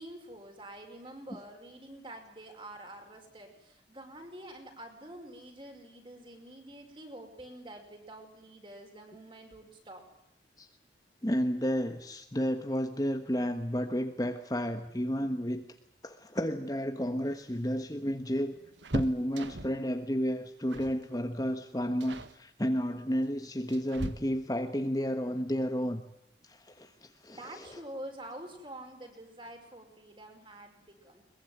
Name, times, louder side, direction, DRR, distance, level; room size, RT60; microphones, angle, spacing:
voice 1, 0.0-10.0 27.3-31.2, right 1 dB, 25° right, 4 dB, 5.2 m, -47 dB
voice 2, 11.2-15.6 16.0-18.6 18.9-26.0 26.4-26.9 27.2-27.8, equal, 20° left, 6 dB, 1.3 m, -32 dB
sound 1, 17.2-19.9 20.7-21.0 21.3-21.6 22.0-22.4 23.2-24.7 26.4-26.5 26.9-27.0 28.2-28.6 28.9-29.0 29.3-29.5, right 1 dB, 85° right, 1.6 m, -41 dB
22.5 x 21.5 x 9.3 m, 0.81 s
head